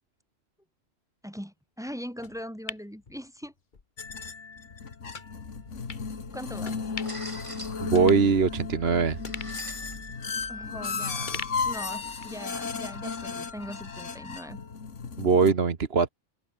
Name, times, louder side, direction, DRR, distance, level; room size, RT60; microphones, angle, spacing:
voice 1, 1.2-3.5 4.2-4.3 6.3-6.8 10.5-14.6, equal, 5° right, 2.8 m, -40 dB
sound 1, 2.2-3.8 4.2-4.3 5.1-5.3 5.9-6.1 6.6-7.3 7.6-7.7 8.0-8.8 9.2-10.8 11.3-12.4 12.8-12.9, left 4 dB, 40° left, 1.5 m, -42 dB
sound 2, 4.0-15.5, left 5 dB, 80° left, 2.2 m, -35 dB
sound 3, 5.3-12.6, right 1 dB, 25° right, 5.4 m, -46 dB
voice 2, 7.8-9.2 15.2-16.1, right 5 dB, 55° right, 1.6 m, -22 dB
omnidirectional pair, 1.2 m